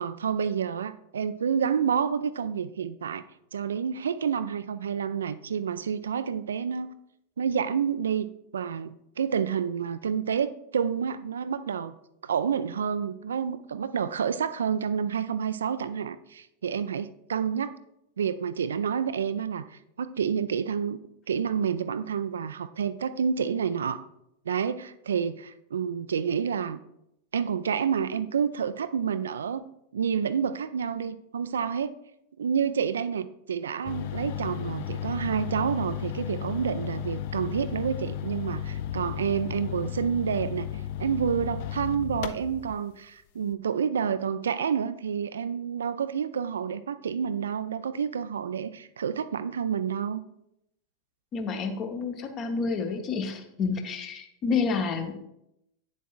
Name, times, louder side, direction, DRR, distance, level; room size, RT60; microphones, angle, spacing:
voice 1, 0.0-3.2 3.5-6.9 7.4-8.3 8.5-12.0 12.2-17.7 18.2-21.0 21.3-24.1 24.5-26.8 27.3-29.6 29.9-31.9 32.4-40.7 41.0-50.2, right 7 dB, 65° right, 14 dB, 0.3 m, -29 dB
sound 1, 33.8-42.8, left 10 dB, 50° left, 0.4 m, -34 dB
voice 2, 51.3-55.3, left 5 dB, 30° left, 5 dB, 1.0 m, -29 dB
9.2 x 7.2 x 2.4 m, 0.80 s
figure-of-eight pair, 90°, 0 cm